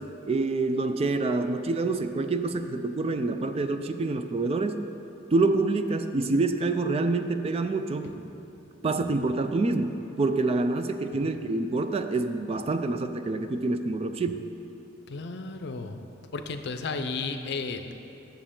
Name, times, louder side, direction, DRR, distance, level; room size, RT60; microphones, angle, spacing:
voice 1, 0.0-4.8 5.3-8.1 8.8-14.4, right 3 dB, 30° right, 8 dB, 0.3 m, -27 dB
voice 2, 15.1-16.0 16.3-17.9, left 4 dB, 60° left, 7 dB, 0.6 m, -34 dB
11.0 x 7.2 x 3.7 m, 2.8 s
head